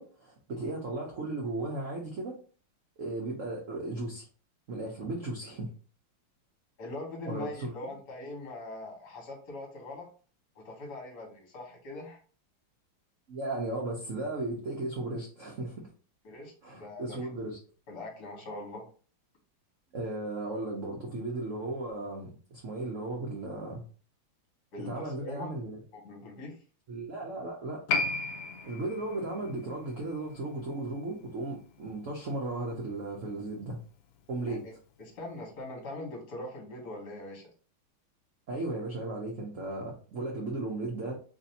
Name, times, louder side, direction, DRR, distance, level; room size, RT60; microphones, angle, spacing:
voice 1, 0.0-2.4 3.0-4.3 4.7-5.7 7.3-7.7 13.3-15.9 16.6-17.6 19.9-23.8 24.8-25.8 26.9-27.9 28.6-33.8 34.3-34.6 38.5-41.2, right 2 dB, 60° right, -2 dB, 0.8 m, -36 dB
voice 2, 6.8-10.1 10.5-12.2 16.2-17.3 17.9-18.8 24.7-25.6 25.9-26.6 34.5-34.7 35.0-37.4, left 2 dB, 55° left, 0 dB, 1.7 m, -42 dB
Piano, 27.9-34.9 35.1-35.2, left 3 dB, 75° left, 0.9 m, -37 dB
3.3 x 2.6 x 4.0 m, 0.39 s
omnidirectional pair, 2.2 m